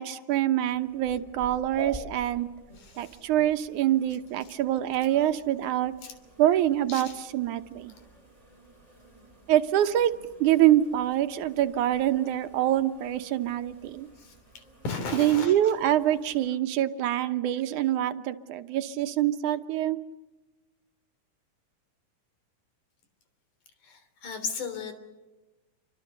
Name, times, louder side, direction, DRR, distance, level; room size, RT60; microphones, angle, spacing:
voice 1, 0.0-2.5 3.0-5.9 6.4-7.9 9.5-10.1 10.4-14.1 15.1-20.0, right 12 dB, 80° right, 9 dB, 2.5 m, -25 dB
sound 1, 0.7-16.5, right 3 dB, 10° left, 6.5 m, -49 dB
voice 2, 2.8-3.2 6.0-6.1 6.9-7.2 7.9-8.0 14.2-14.3 14.8-15.7 23.8-24.9, left 4 dB, 80° left, 8 dB, 4.9 m, -36 dB
29.0 x 24.5 x 6.8 m, 1.1 s
omnidirectional pair, 3.5 m